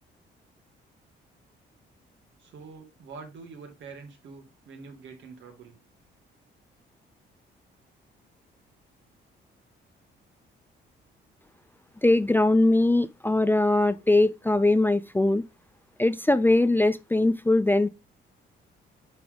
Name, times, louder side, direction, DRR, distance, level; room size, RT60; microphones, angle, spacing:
voice 1, 2.4-5.8, right 4 dB, 70° right, 1.9 m, -45 dB
voice 2, 12.0-15.4 16.0-17.9, left 2 dB, 10° left, 0.4 m, -21 dB
9.3 x 3.5 x 3.7 m
cardioid pair, 90°, 20 cm